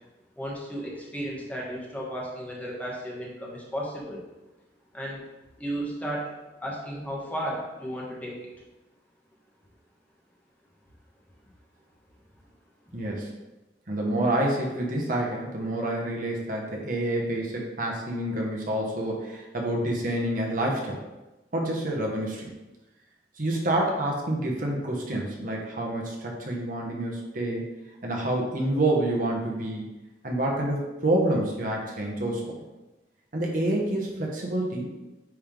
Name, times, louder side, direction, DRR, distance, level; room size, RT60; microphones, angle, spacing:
voice 1, 0.4-4.2 4.9-5.2 5.6-6.3 6.6-8.4, equal, 10° left, -4 dB, 1.3 m, -34 dB
voice 2, 12.9-13.3 13.9-21.0 21.5-22.5 23.4-27.6 28.0-29.8 30.2-32.5 33.3-34.9, right 1 dB, 50° right, -2 dB, 1.3 m, -28 dB
9.4 x 3.5 x 3.8 m, 1.1 s
head